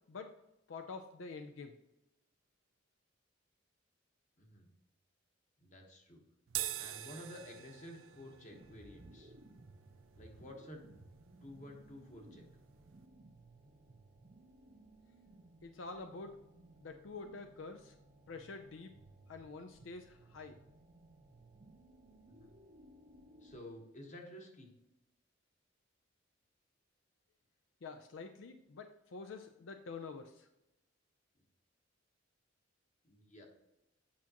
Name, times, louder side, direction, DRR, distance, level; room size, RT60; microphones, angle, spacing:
voice 1, 0.7-1.7 15.6-16.4 16.8-17.9 18.3-18.9 19.3-20.6 27.8-30.5, left 4 dB, 80° left, 6 dB, 0.5 m, -47 dB
voice 2, 5.6-6.2 6.8-9.3 10.1-10.8 11.4-12.5 22.3-22.5 23.4-24.7 33.0-33.5, left 1 dB, 40° left, 2 dB, 1.3 m, -52 dB
sound 1, 6.5-13.1, right 13 dB, 85° right, 0.4 m, -47 dB
sound 2, 8.5-23.6, right 2 dB, 35° right, 0.6 m, -60 dB
8.6 x 5.8 x 2.9 m, 0.92 s
head